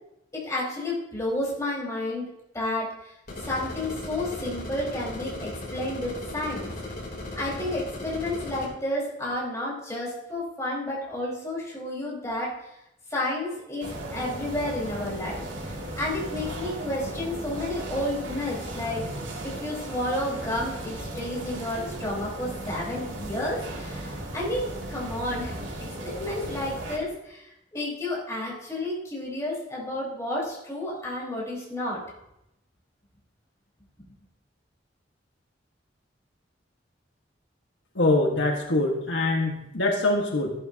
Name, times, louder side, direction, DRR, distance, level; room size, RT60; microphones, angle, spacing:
voice 1, 0.3-2.3 2.5-3.1 3.4-6.7 7.4-12.5 13.1-19.0 19.4-32.0, left 1 dB, 15° left, -6 dB, 4.6 m, -31 dB
sound 1, 3.3-8.7, left 1 dB, 50° left, 3.4 m, -37 dB
sound 2, 13.8-27.0, right 1 dB, 90° right, 2.5 m, -36 dB
voice 2, 37.9-40.5, left 2 dB, 85° left, 1 dB, 1.5 m, -24 dB
14.5 x 11.5 x 2.8 m, 0.85 s
head